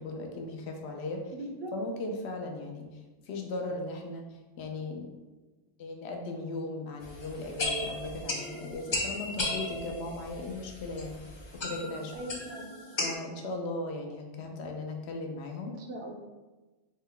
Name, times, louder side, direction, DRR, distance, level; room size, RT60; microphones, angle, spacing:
voice 1, 0.0-1.3 1.7-5.2 5.8-11.4 11.6-12.1 13.0-15.7, left 2 dB, 80° left, 2 dB, 0.8 m, -37 dB
voice 2, 1.3-1.7 12.1-12.8 15.7-16.1, right 1 dB, 75° right, 2 dB, 0.8 m, -40 dB
sound 1, 7.0-13.2, left 2 dB, 50° left, 0.3 m, -36 dB
3.5 x 2.2 x 3.6 m, 1.2 s
omnidirectional pair, 1.1 m